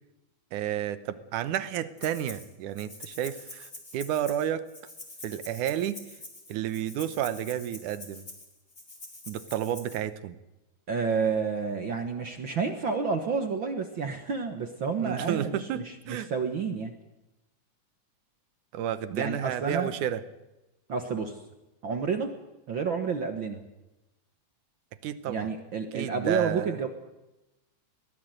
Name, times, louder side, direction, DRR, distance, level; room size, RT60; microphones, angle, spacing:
voice 1, 0.5-4.7 5.2-6.0 6.5-8.3 9.3-10.4 15.0-16.3 18.7-20.2 25.0-25.5 25.9-26.8, right 10 dB, 75° right, 13 dB, 2.4 m, -31 dB
Rattle (instrument), 2.0-2.5 2.8-10.0, left 2 dB, 20° left, 3.7 m, -46 dB
voice 2, 10.9-16.9 19.1-19.9 20.9-21.3 21.8-22.3 22.7-23.6 25.3-26.9, right 5 dB, 55° right, 6 dB, 1.4 m, -30 dB
22.5 x 17.5 x 7.9 m, 0.98 s
omnidirectional pair, 3.8 m